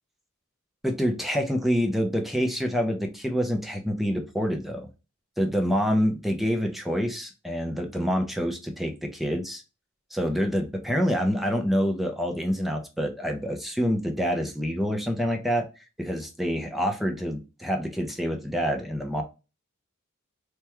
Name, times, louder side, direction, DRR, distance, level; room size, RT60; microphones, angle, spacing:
voice 1, 0.8-4.9 5.4-9.6 10.1-15.6 16.0-19.2, equal, ahead, 3 dB, 0.5 m, -27 dB
3.4 x 2.2 x 2.9 m, 0.29 s
head